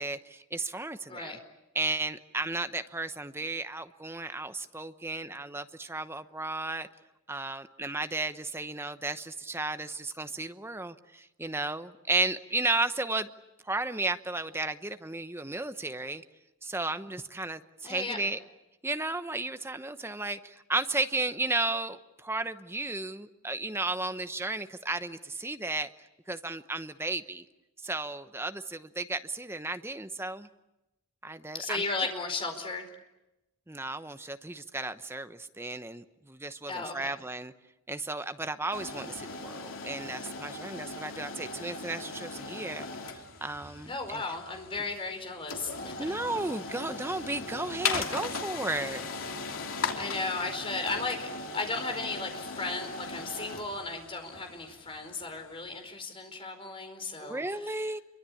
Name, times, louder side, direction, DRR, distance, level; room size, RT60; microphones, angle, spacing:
voice 1, 0.0-1.4 1.7-6.9 7.3-13.3 13.7-16.2 16.6-18.4 18.8-25.9 26.3-27.4 27.8-30.5 31.2-32.1 33.7-37.5 37.9-44.2 46.0-49.1 57.2-58.0, right 2 dB, 10° right, 10 dB, 0.9 m, -34 dB
voice 2, 17.8-18.2 31.5-32.9 36.7-37.1 43.9-46.1 50.0-51.3 51.5-57.8, left 3 dB, 25° left, 6 dB, 4.7 m, -35 dB
sound 1, 38.7-55.6, left 4 dB, 70° left, 3.0 m, -38 dB
28.5 x 24.0 x 8.5 m, 0.94 s
head